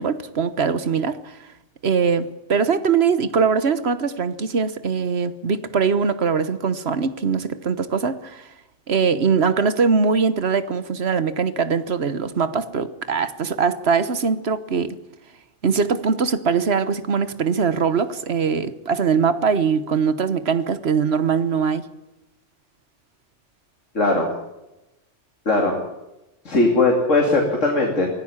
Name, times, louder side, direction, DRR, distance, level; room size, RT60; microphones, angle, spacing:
voice 1, 0.0-1.4 1.8-8.5 8.9-14.9 15.6-21.9, right 5 dB, 60° right, 1.4 m, -21 dB
voice 2, 23.9-24.3 25.4-25.7 26.4-28.1, left 2 dB, 90° left, 3.3 m, -19 dB
24.5 x 16.0 x 7.3 m
omnidirectional pair, 1.2 m